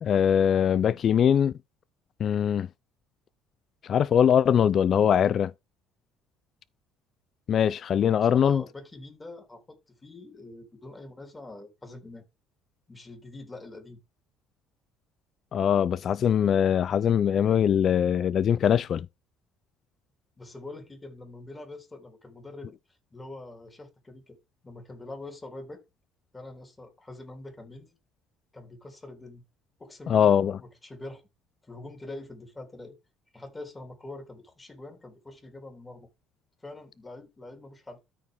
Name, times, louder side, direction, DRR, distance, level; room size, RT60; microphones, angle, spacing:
voice 1, 0.0-1.5 2.2-2.7 3.9-5.5 7.5-8.6 15.5-19.1 30.1-30.6, left 8 dB, 45° left, 0.5 m, -22 dB
voice 2, 8.1-12.2 12.9-14.0 20.4-22.7 23.1-24.4 24.6-25.8 26.3-28.0 28.5-29.4 29.8-31.2 31.6-33.0 33.3-36.1 36.6-38.0, left 2 dB, 15° left, 3.5 m, -44 dB
13.0 x 4.8 x 3.7 m
cardioid pair, 125°, 0 cm